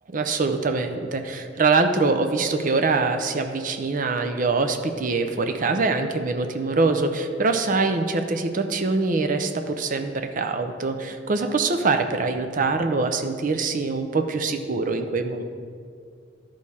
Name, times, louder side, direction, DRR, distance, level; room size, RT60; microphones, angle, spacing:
voice 1, 0.1-15.4, right 3 dB, 45° right, 6 dB, 0.6 m, -24 dB
12.0 x 4.8 x 4.2 m, 2.2 s
head